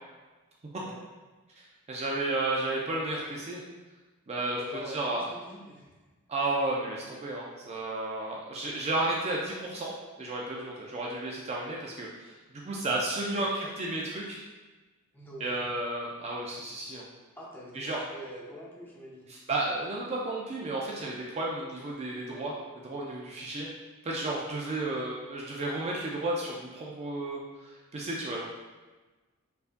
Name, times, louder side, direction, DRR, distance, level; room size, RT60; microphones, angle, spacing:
voice 1, 1.6-3.6 4.3-4.6 4.9-5.2 6.3-9.9 10.2-12.3 12.6-13.5 13.8-14.4 15.4-17.0 17.7-18.0 19.3-22.5 22.8-23.7 24.0-28.5, right 2 dB, 30° right, -3 dB, 0.4 m, -32 dB
voice 2, 4.5-5.9 13.3-13.7 15.1-15.7 17.3-19.3 24.9-25.1, equal, 10° left, -5 dB, 0.6 m, -45 dB
4.5 x 2.5 x 2.5 m, 1.2 s
head